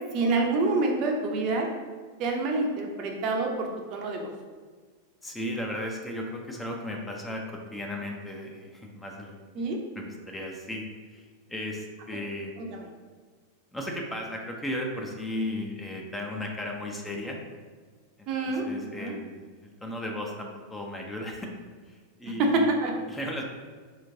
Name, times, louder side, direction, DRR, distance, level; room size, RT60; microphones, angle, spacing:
voice 1, 0.1-1.7 2.2-4.3 9.6-9.8 12.6-12.7 18.3-18.7 19.0-19.1 22.2-22.9, right 3 dB, 40° right, 2 dB, 0.6 m, -27 dB
voice 2, 5.2-9.4 10.0-12.5 13.7-17.4 18.2-21.5 21.8-22.7 23.1-23.4, left 1 dB, 10° left, 1 dB, 0.5 m, -35 dB
4.1 x 3.0 x 2.6 m, 1.5 s
figure-of-eight pair, 90°, 0 cm